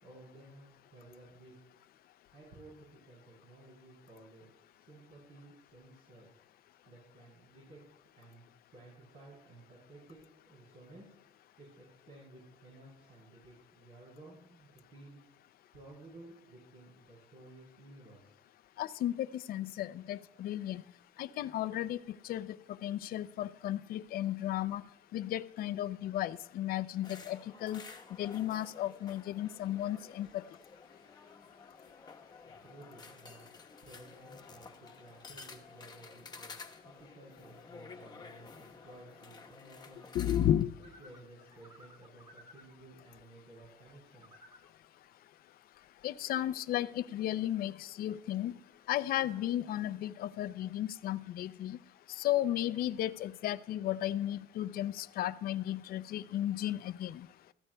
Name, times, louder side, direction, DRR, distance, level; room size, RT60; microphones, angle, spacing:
voice 1, 0.0-1.6 2.3-6.3 6.9-7.9 8.1-11.1 11.6-15.2 15.7-18.3 32.4-33.4 33.8-36.5 36.8-40.4 40.8-44.3, right 2 dB, 60° right, -5 dB, 6.2 m, -55 dB
voice 2, 18.8-20.8 21.2-22.0 22.2-22.5 22.8-24.8 25.1-27.8 28.2-30.3 40.1-40.7 46.0-48.5 48.9-51.8 52.2-57.3, left 12 dB, 60° left, 13 dB, 0.5 m, -34 dB
sound 1, 27.0-40.6, left 4 dB, 25° left, 1.2 m, -52 dB
sound 2, 40.8-42.8 44.1-44.7, equal, 25° right, 1.9 m, -58 dB
20.5 x 14.5 x 2.3 m, 0.84 s
cardioid pair, 110°, 17 cm